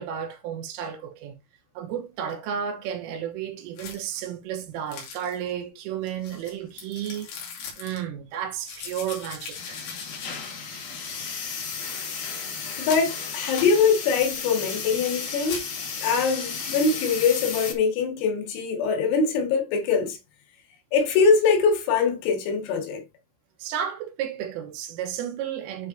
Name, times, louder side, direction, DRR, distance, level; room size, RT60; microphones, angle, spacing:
voice 1, 0.0-1.4 1.8-7.3 7.8-9.9 23.6-25.9, right 9 dB, 80° right, 3.6 m, -32 dB
sound 1, 3.8-4.3 4.9-5.5 6.1-8.0 8.6-10.7 11.0-11.1 12.1-12.4 12.8-13.2 13.6-13.7 14.1-14.4 15.0-15.7, left 6 dB, 75° left, 5.0 m, -40 dB
sound 2, 9.5-17.7, left 5 dB, 55° left, 2.5 m, -34 dB
voice 2, 12.8-15.6 16.0-20.2 20.9-23.0, left 5 dB, 90° left, 4.6 m, -23 dB
11.5 x 5.5 x 2.7 m
omnidirectional pair, 5.9 m